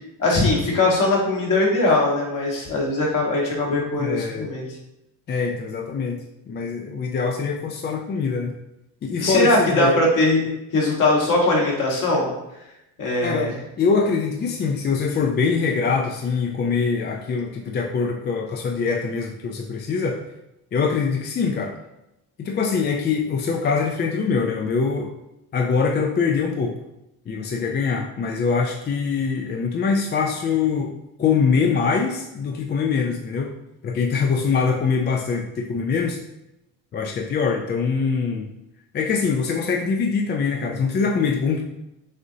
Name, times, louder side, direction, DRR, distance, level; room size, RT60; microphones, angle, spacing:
voice 1, 0.2-4.6 9.2-10.4 10.7-12.3 13.0-13.5, left 2 dB, 50° left, -2 dB, 1.6 m, -20 dB
voice 2, 4.0-4.5 5.3-8.5 9.0-10.0 13.2-20.2 20.7-21.7 22.4-25.1 25.5-26.8 27.3-30.9 31.2-33.5 33.8-36.2 36.9-38.5 38.9-41.6, left 5 dB, 25° left, 1 dB, 0.4 m, -23 dB
6.5 x 2.6 x 2.7 m, 0.90 s
cardioid pair, 105°, 39 cm